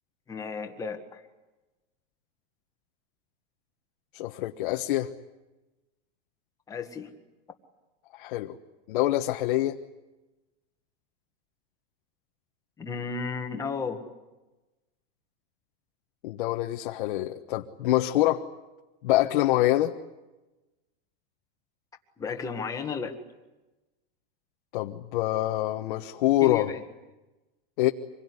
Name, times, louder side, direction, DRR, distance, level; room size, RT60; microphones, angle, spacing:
voice 1, 0.3-1.2 6.7-7.1 12.8-14.0 22.2-23.2 26.4-26.8, left 5 dB, 10° left, 4 dB, 1.8 m, -33 dB
voice 2, 4.1-5.1 8.1-8.6 8.9-9.8 16.2-18.5 19.0-19.9 24.7-26.7 27.8-27.9, left 15 dB, 55° left, 3 dB, 1.3 m, -25 dB
26.5 x 22.0 x 9.8 m, 1.1 s
supercardioid pair, 170°, 30 cm